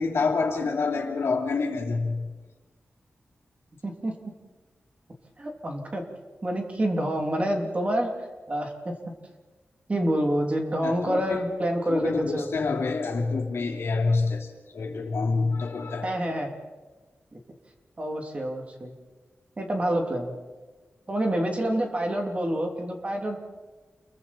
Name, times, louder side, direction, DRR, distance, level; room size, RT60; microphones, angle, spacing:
voice 1, 0.0-2.2 10.8-11.4 11.9-14.5 14.7-16.1, left 4 dB, 80° left, 2 dB, 3.1 m, -27 dB
voice 2, 3.8-4.1 5.4-6.0 6.4-8.9 9.9-12.5 16.0-16.5 17.3-17.4 18.0-18.9 19.6-20.3 21.1-23.4, right 1 dB, 30° right, 2 dB, 3.2 m, -27 dB
29.5 x 22.5 x 4.5 m, 1.3 s
wide cardioid pair, 130°, 4 cm